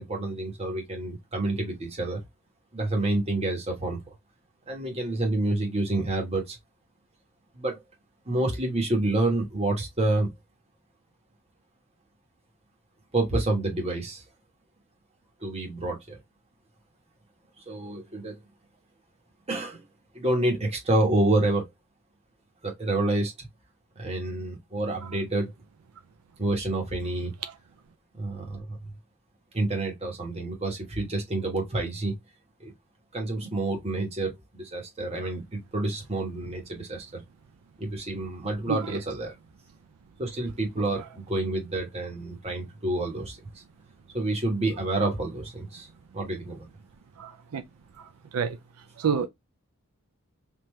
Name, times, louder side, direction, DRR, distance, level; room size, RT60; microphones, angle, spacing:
voice 1, 0.0-2.2 2.7-4.0 4.7-6.6 7.5-7.8 8.2-10.3 13.1-14.2 15.4-16.2 17.7-18.4 19.5-19.8 20.1-21.7 22.6-23.5 24.0-25.5 26.4-27.3 28.2-28.6 29.5-32.1 32.6-32.7 33.1-37.2 37.8-39.3 40.2-43.4 44.1-45.9 46.1-46.7, right 2 dB, 30° right, 1.3 m, -28 dB
voice 2, 38.7-39.0 47.2-47.6 48.0-48.6 49.0-49.3, right 7 dB, 80° right, 0.4 m, -29 dB
3.5 x 2.8 x 3.1 m
head